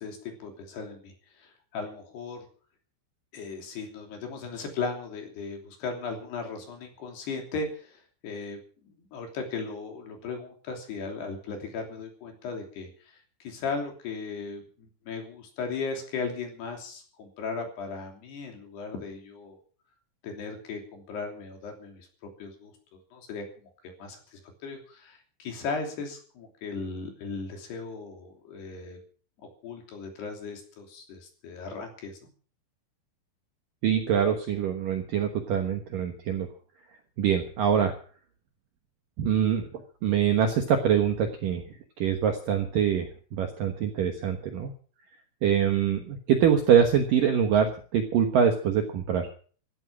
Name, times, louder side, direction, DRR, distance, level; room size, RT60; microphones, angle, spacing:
voice 1, 0.0-2.5 3.3-8.6 8.8-19.6 20.2-22.1 22.4-22.7 23.1-29.0 29.4-32.2, left 4 dB, 60° left, 3 dB, 5.0 m, -37 dB
voice 2, 33.8-36.5 37.2-37.9 39.2-39.6 40.0-41.6 42.0-44.7 45.4-49.3, right 8 dB, 65° right, 5 dB, 2.2 m, -24 dB
15.5 x 12.5 x 6.2 m, 0.44 s
omnidirectional pair, 5.6 m